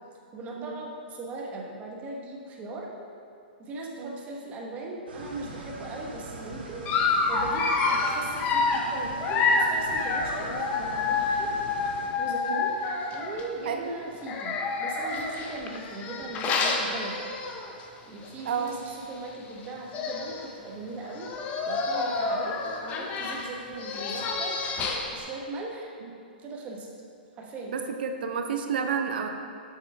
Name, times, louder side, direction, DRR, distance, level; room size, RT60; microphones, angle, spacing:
voice 1, 0.3-2.9 3.6-6.9 7.3-11.5 12.2-12.8 13.1-17.2 18.1-21.3 21.7-24.6 25.1-25.9 26.4-26.9 27.4-27.8, right 2 dB, 25° right, -1 dB, 1.1 m, -39 dB
sound 1, 5.1-12.1, right 2 dB, 85° right, 1.4 m, -42 dB
Dog, 6.8-13.4 14.2-17.8 18.2-18.4 18.7-18.8 19.6-19.7 19.9-20.5 21.1-25.2, left 4 dB, 25° left, 0.7 m, -28 dB
voice 2, 18.4-18.8 22.4-22.5 26.0-26.1 27.7-29.3, right 6 dB, 65° right, 5 dB, 0.7 m, -31 dB
7.1 x 6.7 x 3.4 m, 2.4 s
hypercardioid pair, 130°, 6 cm